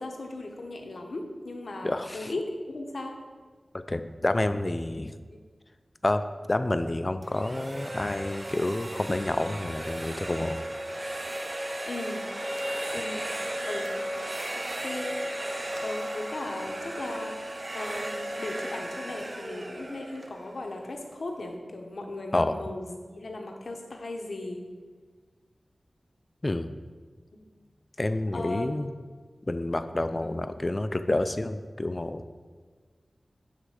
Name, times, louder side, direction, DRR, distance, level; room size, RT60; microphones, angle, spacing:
voice 1, 0.0-3.1 11.9-12.3 12.9-13.3 13.6-13.9 14.5-15.2 15.8-17.3 17.7-24.6 27.3-27.4 28.3-28.7 30.2-30.3, left 2 dB, 75° left, 2 dB, 0.8 m, -37 dB
voice 2, 1.8-2.3 3.7-5.1 6.0-6.2 6.5-10.6 22.3-22.6 26.4-26.7 28.0-28.9 29.5-32.2, left 2 dB, 35° left, 10 dB, 0.3 m, -29 dB
sound 1, 7.2-21.1, right 1 dB, 45° right, 0.5 m, -35 dB
8.2 x 3.3 x 4.8 m, 1.5 s
wide cardioid pair, 55°, 0 cm